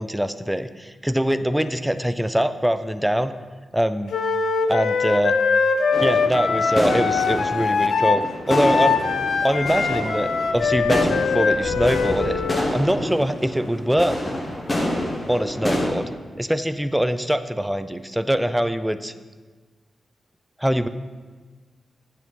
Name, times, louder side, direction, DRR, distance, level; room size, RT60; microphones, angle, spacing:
voice 1, 0.0-3.3 3.7-4.1 4.7-5.4 6.0-9.0 9.4-12.4 12.7-14.2 15.3-16.1 16.4-19.1 20.6-20.9, equal, 5° right, 11 dB, 0.3 m, -23 dB
Wind instrument woodwind instrument, 4.1-12.6, left 5 dB, 80° left, 0.6 m, -22 dB
sound 1, 5.9-15.9, left 1 dB, 25° left, 1.1 m, -28 dB
8.1 x 7.1 x 4.1 m, 1.4 s
wide cardioid pair, 130°, 0 cm